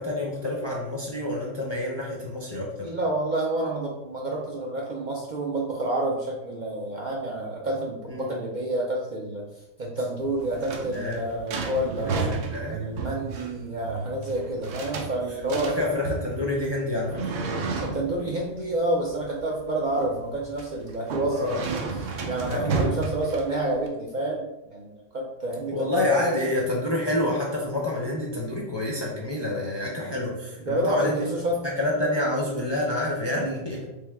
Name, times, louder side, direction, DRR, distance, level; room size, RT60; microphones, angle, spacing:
voice 1, 0.0-2.9 8.1-8.3 10.9-11.3 12.3-12.9 15.5-17.3 21.3-21.6 22.5-23.0 25.7-31.2 31.8-33.8, left 2 dB, 30° left, -3 dB, 0.5 m, -28 dB
voice 2, 2.8-9.5 9.8-12.3 12.7-15.8 17.8-26.2 30.7-31.6 33.4-33.5, right 2 dB, 50° right, -2 dB, 0.6 m, -29 dB
sound 1, 10.2-23.9, right 4 dB, 85° right, 1.0 m, -33 dB
3.4 x 3.3 x 3.4 m, 0.94 s
omnidirectional pair, 1.2 m